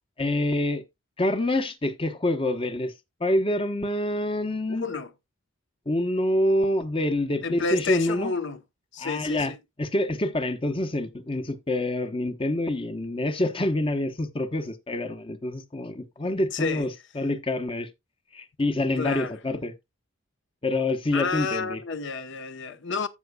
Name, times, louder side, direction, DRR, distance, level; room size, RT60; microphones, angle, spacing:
voice 1, 0.2-0.8 1.2-2.9 3.2-4.9 5.9-8.3 9.0-9.5 9.8-17.9 18.3-19.7 20.6-21.8, left 1 dB, 25° left, 0.9 m, -26 dB
voice 2, 4.7-5.1 7.4-8.6 8.9-9.6 16.5-16.9 19.0-19.3 21.1-23.1, left 4 dB, 60° left, 0.9 m, -30 dB
14.5 x 5.8 x 2.3 m
head